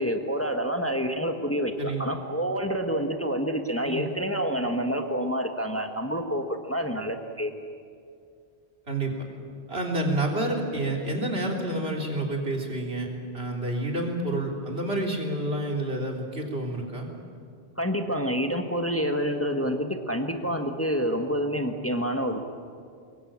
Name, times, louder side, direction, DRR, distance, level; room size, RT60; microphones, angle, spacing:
voice 1, 0.0-7.5 17.8-22.4, equal, 15° left, 4 dB, 1.4 m, -28 dB
voice 2, 1.8-2.1 3.8-4.0 8.9-9.1 9.7-13.1 13.3-17.1, right 1 dB, 75° right, 0 dB, 3.7 m, -29 dB
24.0 x 21.5 x 8.8 m, 2.3 s
omnidirectional pair, 1.0 m